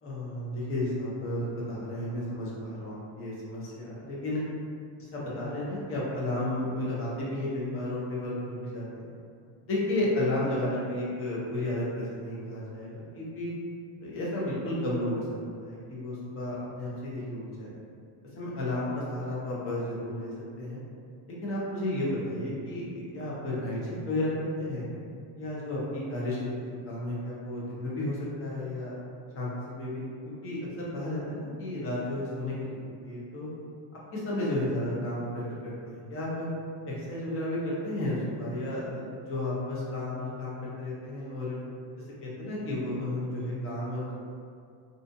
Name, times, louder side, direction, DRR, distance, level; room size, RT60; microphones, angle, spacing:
voice 1, 0.0-4.4 5.0-9.1 9.6-13.5 14.0-17.7 18.4-20.8 21.4-24.8 25.4-28.9 29.3-33.5 34.1-36.5 36.9-41.6 42.2-44.1, left 1 dB, 30° left, -6 dB, 0.5 m, -33 dB
2.5 x 2.4 x 2.5 m, 2.3 s
cardioid pair, 160°, 48 cm